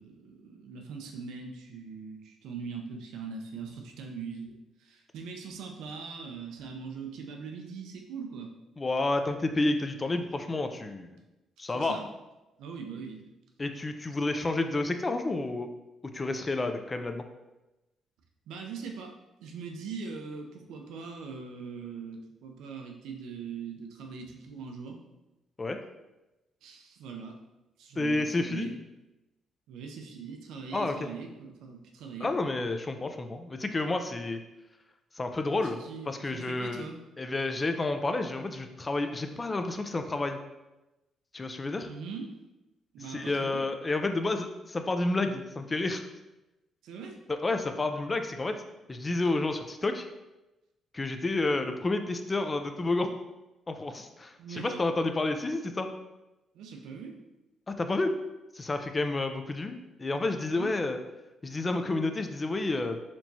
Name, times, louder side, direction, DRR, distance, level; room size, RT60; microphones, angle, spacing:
voice 1, 0.0-8.5 11.7-12.0 12.6-13.3 18.5-19.1 19.4-25.0 26.6-27.4 27.8-28.8 29.7-32.3 35.6-37.0 41.8-42.3 42.9-43.6 46.8-47.2 54.4-54.9 56.5-57.2 60.5-60.7, right 5 dB, 85° right, 2 dB, 0.5 m, -41 dB
voice 2, 8.8-11.1 11.6-12.0 13.6-15.7 16.1-17.2 25.6-25.8 28.0-28.7 30.7-31.1 32.2-34.4 35.2-36.8 37.2-40.4 41.3-41.9 43.1-46.1 47.3-48.6 48.9-50.1 50.9-53.1 53.7-55.9 57.7-58.1 58.5-61.0 61.4-63.0, left 2 dB, 25° left, 7 dB, 0.4 m, -30 dB
4.4 x 2.9 x 2.7 m, 1.0 s
cardioid pair, 90°, 0 cm